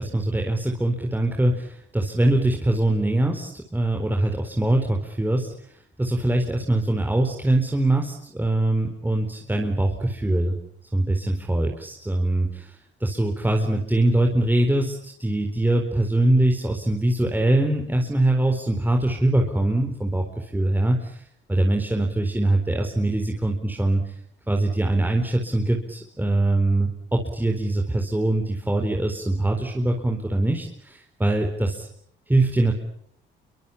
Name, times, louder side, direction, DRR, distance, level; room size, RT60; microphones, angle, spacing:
voice 1, 0.0-5.7 6.0-10.5 10.9-21.2 21.5-24.1 24.5-31.9 32.3-32.7, right 1 dB, 10° right, 2 dB, 4.3 m, -23 dB
26.5 x 24.5 x 8.7 m, 0.67 s
cardioid pair, 90°, 20 cm